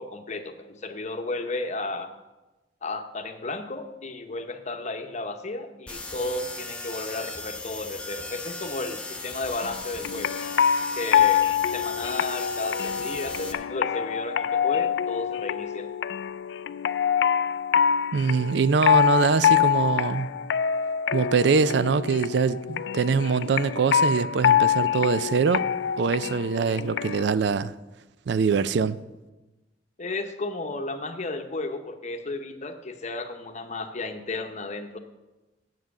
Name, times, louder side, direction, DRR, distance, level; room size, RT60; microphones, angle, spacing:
voice 1, 0.0-2.1 2.8-10.4 11.0-11.4 11.7-15.9 30.0-35.0, left 2 dB, 40° left, 0.9 m, -33 dB
sound 1, 5.9-13.5, left 2 dB, 5° left, 0.8 m, -37 dB
sound 2, 9.6-27.3, left 8 dB, 70° left, 0.3 m, -25 dB
voice 2, 18.1-20.3 21.1-25.7 26.0-27.7 28.3-29.0, right 5 dB, 65° right, 0.4 m, -23 dB
7.7 x 7.5 x 7.1 m
head